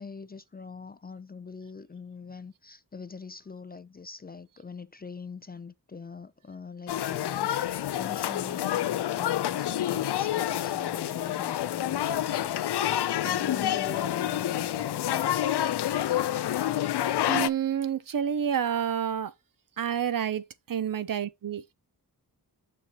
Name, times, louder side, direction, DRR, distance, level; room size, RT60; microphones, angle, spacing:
voice 1, 0.0-12.9 13.2-15.4, left 5 dB, 25° left, 0.4 m, -43 dB
sound 1, 6.9-17.5, left 12 dB, 85° left, 0.6 m, -28 dB
voice 2, 17.3-19.3 19.8-21.7, right 8 dB, 60° right, 0.7 m, -29 dB
6.9 x 6.3 x 2.9 m
wide cardioid pair, 105°, 39 cm